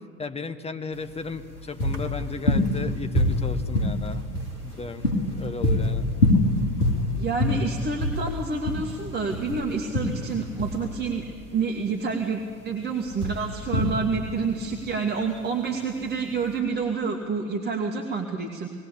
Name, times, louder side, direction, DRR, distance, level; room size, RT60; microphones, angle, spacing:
voice 1, 0.2-4.3 4.6-6.1, left 4 dB, 15° left, 9 dB, 1.2 m, -35 dB
sound 1, 0.9-16.6, left 1 dB, 85° left, 2.9 m, -26 dB
voice 2, 7.2-11.2 11.5-18.7, right 4 dB, 25° right, 1 dB, 2.0 m, -28 dB
20.0 x 17.5 x 8.6 m, 2.2 s
figure-of-eight pair, 70°, 44 cm